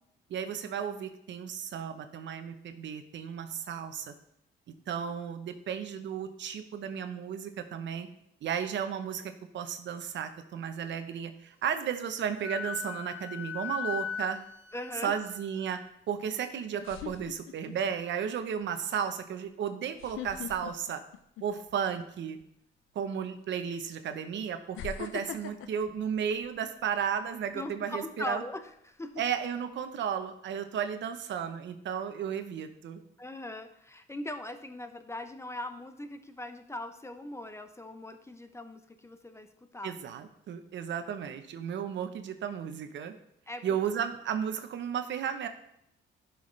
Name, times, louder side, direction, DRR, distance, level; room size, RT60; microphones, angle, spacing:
voice 1, 0.3-4.1 4.9-8.1 8.4-14.4 15.0-15.8 16.1-21.0 21.4-22.4 22.9-28.4 29.2-33.0 39.8-43.2 43.6-45.5, right 8 dB, 65° right, 8 dB, 0.8 m, -34 dB
Wind instrument woodwind instrument, 12.4-15.9, left 6 dB, 10° right, 1.2 m, -38 dB
sound 1, 13.7-14.2 16.1-16.2 16.8-18.0 18.4-18.6 19.9-21.8 22.2-22.4 23.4-23.5 24.7-27.0 27.4-27.7, left 9 dB, 90° left, 0.6 m, -42 dB
voice 2, 14.7-15.2 27.5-29.2 33.2-40.0 43.5-43.6, left 2 dB, 15° left, 8 dB, 0.7 m, -40 dB
11.5 x 5.7 x 3.3 m, 0.76 s
cardioid pair, 90°, 20 cm